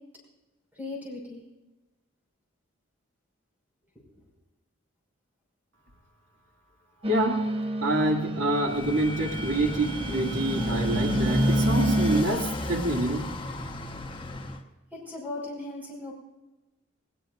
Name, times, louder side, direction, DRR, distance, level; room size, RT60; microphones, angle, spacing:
voice 1, 0.8-1.4 14.9-16.1, left 2 dB, 10° right, -3 dB, 5.5 m, -37 dB
sound 1, 7.0-12.2, right 1 dB, 30° right, 0.8 m, -29 dB
voice 2, 7.1-7.5 7.8-13.6, right 1 dB, 65° right, 0 dB, 2.6 m, -27 dB
Motorcycle, 8.6-14.6, left 1 dB, 25° left, 1.2 m, -31 dB
20.0 x 19.5 x 2.6 m, 1.1 s
head